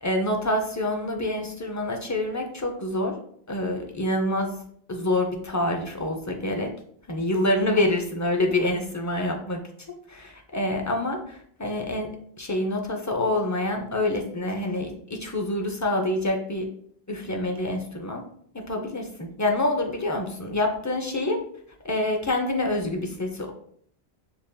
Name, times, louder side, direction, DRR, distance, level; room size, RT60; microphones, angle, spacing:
voice 1, 0.0-3.1 3.5-4.6 4.9-6.7 7.1-9.6 10.1-16.6 17.1-18.2 18.5-21.4 21.8-23.5, left 1 dB, 30° left, 2 dB, 0.3 m, -26 dB
7.0 x 2.6 x 2.2 m, 0.63 s
omnidirectional pair, 1.1 m